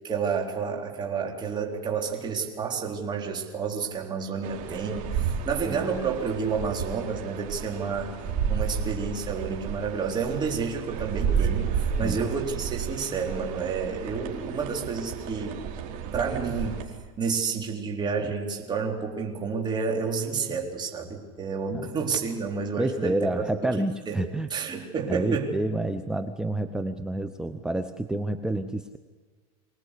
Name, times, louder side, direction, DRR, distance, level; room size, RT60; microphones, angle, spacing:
voice 1, 0.0-8.2 8.5-15.6 16.1-23.5 23.8-24.2 24.5-25.5, right 5 dB, 25° right, 1 dB, 3.9 m, -30 dB
sound 1, 4.4-16.8, right 7 dB, 50° right, 4.1 m, -32 dB
voice 2, 22.8-24.5 25.1-29.0, right 2 dB, 5° right, 9 dB, 0.8 m, -29 dB
25.0 x 19.0 x 8.4 m, 1.5 s
supercardioid pair, 135°, 18 cm